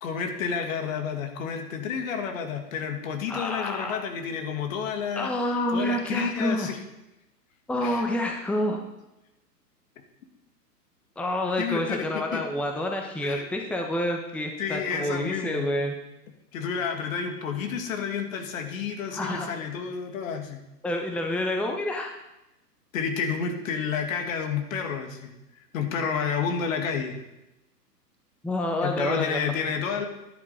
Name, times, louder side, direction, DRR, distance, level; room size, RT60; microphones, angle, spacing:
voice 1, 0.0-5.3 5.7-6.8 7.8-8.0 11.6-12.4 13.2-13.5 14.6-15.7 16.5-20.6 22.9-25.3 25.7-27.2 28.8-30.1, left 6 dB, 55° left, 4 dB, 2.5 m, -30 dB
voice 2, 3.3-4.0 5.1-6.7 7.7-8.8 11.2-16.0 19.1-19.5 20.8-22.1 28.4-29.4, left 1 dB, ahead, 2 dB, 1.1 m, -28 dB
13.5 x 11.0 x 5.2 m, 0.94 s
figure-of-eight pair, 115°, 49 cm